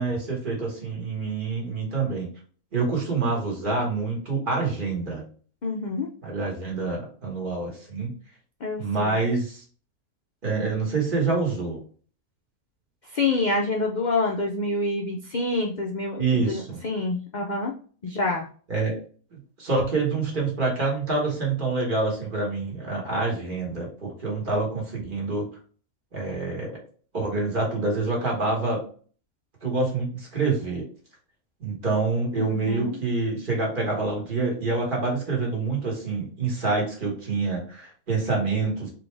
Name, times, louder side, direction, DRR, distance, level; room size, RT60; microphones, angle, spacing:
voice 1, 0.0-2.3 2.7-5.2 6.2-8.1 8.8-9.6 10.4-11.8 16.2-16.8 18.7-19.0 19.3-25.5 26.1-26.8 27.1-28.8 29.6-30.8 31.6-38.9, right 3 dB, 35° right, -2 dB, 1.6 m, -26 dB
voice 2, 5.6-6.1 8.6-9.1 13.1-17.7 18.0-18.5 32.4-33.0, left 2 dB, 75° left, 1 dB, 0.4 m, -27 dB
4.1 x 3.3 x 3.3 m, 0.43 s
omnidirectional pair, 1.5 m